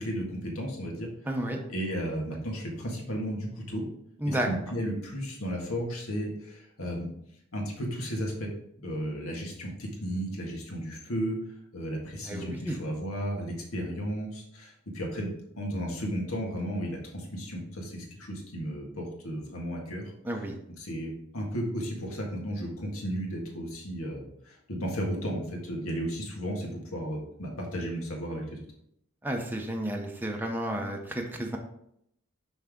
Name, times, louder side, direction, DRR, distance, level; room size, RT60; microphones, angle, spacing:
voice 1, 0.0-1.1 1.7-3.8 4.3-7.1 7.5-8.5 8.8-11.4 11.7-20.1 20.8-28.6, equal, 80° left, 0 dB, 1.7 m, -34 dB
voice 2, 1.3-1.6 4.2-4.5 12.2-12.8 20.2-20.6 29.2-31.6, right 1 dB, 10° right, 2 dB, 0.6 m, -31 dB
5.9 x 5.6 x 3.6 m, 0.74 s
head